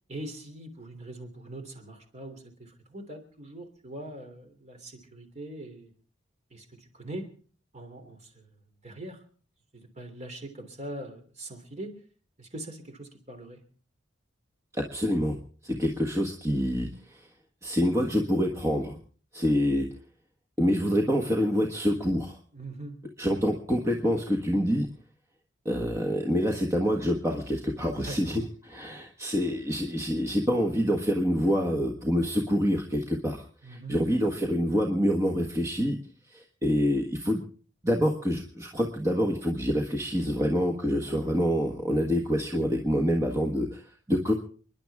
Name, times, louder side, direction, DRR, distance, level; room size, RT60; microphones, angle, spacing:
voice 1, 0.1-5.9 6.5-7.3 7.7-8.5 8.8-9.2 9.7-11.9 12.4-13.6 22.5-23.0 27.9-28.2 33.6-34.0, right 1 dB, 35° right, 5 dB, 3.2 m, -42 dB
voice 2, 14.7-15.4 15.6-17.3 17.6-19.0 19.3-19.9 20.6-22.4 23.2-24.9 25.6-36.0 36.3-37.4 37.8-44.3, equal, 15° right, 1 dB, 1.5 m, -26 dB
30.0 x 11.0 x 3.6 m, 0.42 s
head